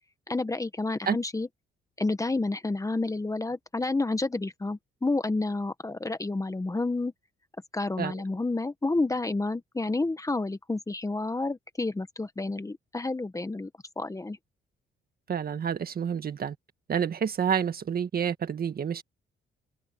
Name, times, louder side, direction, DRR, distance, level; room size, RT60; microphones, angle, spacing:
voice 1, 0.3-1.5 2.0-7.1 7.7-13.7 14.0-14.4, left 2 dB, 15° left, 1.2 m, -30 dB
voice 2, 15.3-16.5 16.9-19.0, right 7 dB, 50° right, 1.8 m, -29 dB
open air
cardioid pair, 90°, 20 cm